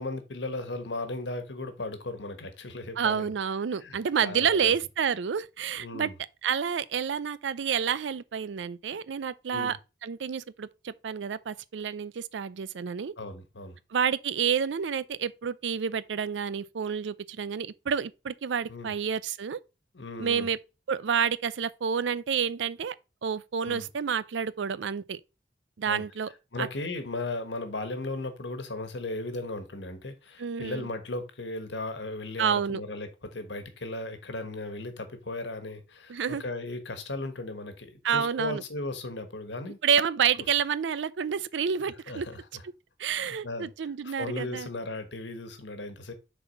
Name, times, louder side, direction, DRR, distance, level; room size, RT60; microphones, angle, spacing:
voice 1, 0.0-3.3 3.8-4.7 5.8-6.1 9.5-9.8 13.2-13.8 18.7-18.9 19.9-20.5 23.6-23.8 25.8-26.0 26.5-39.8 42.1-42.6 43.0-43.7 44.0-46.1, left 2 dB, 75° left, 1.3 m, -36 dB
voice 2, 3.0-6.1 6.4-9.8 10.0-13.1 13.9-19.6 20.2-20.6 20.9-23.0 23.2-25.2 25.8-26.3 26.6-26.7 30.4-30.9 32.4-32.8 36.1-36.4 38.0-38.6 39.8-42.3 43.0-44.7, right 7 dB, 85° right, 0.4 m, -29 dB
6.9 x 4.2 x 4.1 m
head